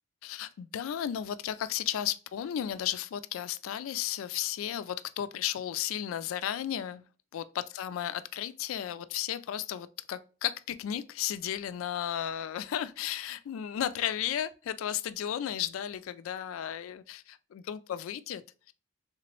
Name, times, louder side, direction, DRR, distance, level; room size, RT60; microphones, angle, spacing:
voice 1, 0.2-7.0 7.3-18.7, left 10 dB, 90° left, 0.3 m, -34 dB
3.3 x 2.9 x 3.0 m
head